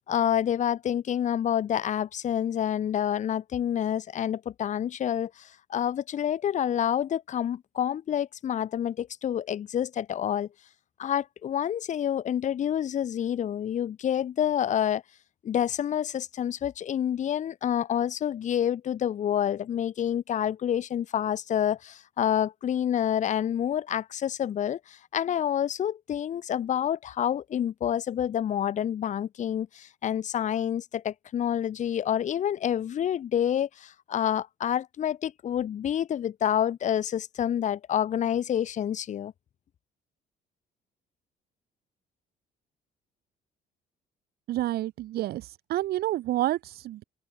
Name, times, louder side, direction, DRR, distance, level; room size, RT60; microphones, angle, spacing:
voice 1, 0.1-10.5 11.0-15.0 15.4-39.3, left 10 dB, 45° left, 1.0 m, -28 dB
voice 2, 44.5-47.0, right 14 dB, 70° right, 1.0 m, -29 dB
cardioid pair, 110°, 17 cm